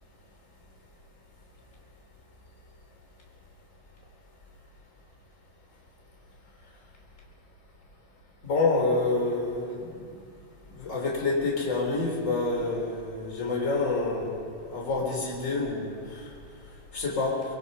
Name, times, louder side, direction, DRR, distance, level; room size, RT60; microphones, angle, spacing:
voice 1, 8.4-9.9 10.8-16.2 16.9-17.4, left 3 dB, 20° left, -1 dB, 3.8 m, -28 dB
24.5 x 21.5 x 5.5 m, 2.3 s
omnidirectional pair, 3.9 m